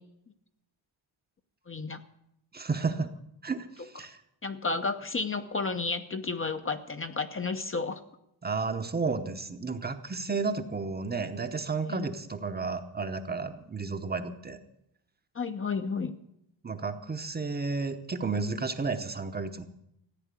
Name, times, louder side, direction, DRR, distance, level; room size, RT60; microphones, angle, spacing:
voice 1, 1.7-2.0 4.4-8.0 11.9-12.1 15.3-16.1, left 4 dB, 30° left, 8 dB, 0.7 m, -32 dB
voice 2, 2.5-3.1 3.4-4.2 8.4-14.6 16.6-19.7, right 4 dB, 20° right, 8 dB, 0.8 m, -32 dB
15.0 x 9.5 x 8.2 m, 0.78 s
wide cardioid pair, 165°, 46 cm